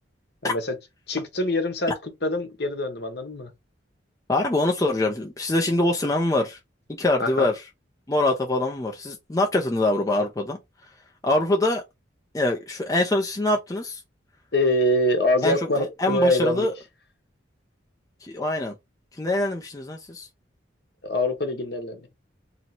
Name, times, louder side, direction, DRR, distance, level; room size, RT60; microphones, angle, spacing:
voice 1, 1.1-3.5 7.2-7.5 14.5-16.7 21.0-22.1, left 1 dB, 60° left, 1.0 m, -24 dB
voice 2, 4.3-6.6 6.9-7.6 8.1-10.9 11.2-11.8 12.3-14.0 15.4-16.7 18.2-18.7 19.1-20.3, left 2 dB, 20° left, 0.5 m, -24 dB
2.9 x 2.8 x 4.2 m
head